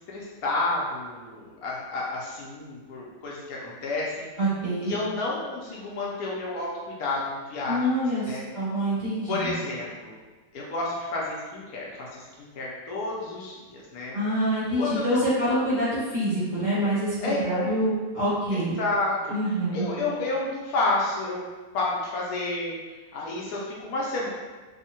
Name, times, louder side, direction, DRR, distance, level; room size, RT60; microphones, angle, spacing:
voice 1, 0.1-4.3 4.8-7.8 8.2-8.5 9.3-10.1 10.5-14.2 14.8-15.2 17.2-17.7 18.5-21.4 21.7-24.3, left 2 dB, 70° left, -4 dB, 1.0 m, -30 dB
voice 2, 4.4-4.9 7.7-9.5 14.1-18.8 19.3-19.8, right 1 dB, 35° right, -10 dB, 0.8 m, -26 dB
3.5 x 2.0 x 2.7 m, 1.3 s
omnidirectional pair, 1.7 m